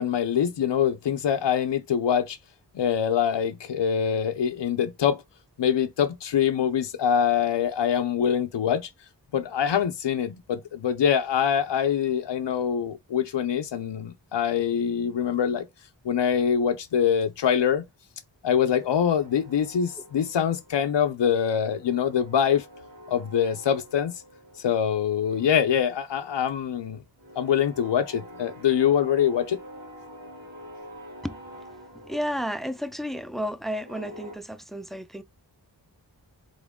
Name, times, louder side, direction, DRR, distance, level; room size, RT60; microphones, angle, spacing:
voice 1, 0.0-2.4 2.7-5.2 5.6-8.9 9.3-15.7 16.0-17.8 18.4-22.6 23.1-24.1 24.6-27.0 27.4-29.6, left 8 dB, 90° left, 0.6 m, -24 dB
sound 1, 18.5-21.0 21.3-24.9 25.2-34.4, equal, 90° right, 2.3 m, -47 dB
voice 2, 31.9-35.2, equal, ahead, 0.4 m, -32 dB
3.8 x 3.7 x 3.5 m
wide cardioid pair, 50°, 42 cm